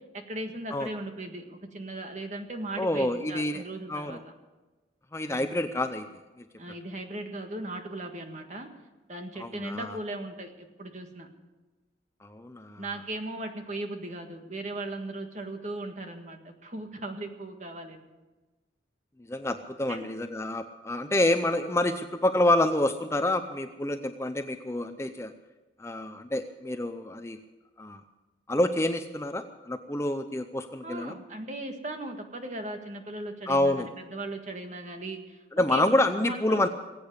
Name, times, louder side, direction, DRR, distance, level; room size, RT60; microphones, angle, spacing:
voice 1, 0.3-4.2 5.3-5.5 6.6-8.7 9.1-11.3 12.8-18.1 19.9-20.1 30.8-36.6, right 2 dB, 40° right, 4 dB, 1.7 m, -38 dB
voice 2, 2.8-3.6 3.9-4.2 5.1-6.1 9.4-10.0 12.2-12.9 19.3-25.3 25.8-27.4 27.8-28.0 28.5-31.2 33.5-33.9 35.5-36.7, left 1 dB, 15° left, 8 dB, 0.5 m, -27 dB
20.0 x 8.6 x 8.1 m, 1.2 s
head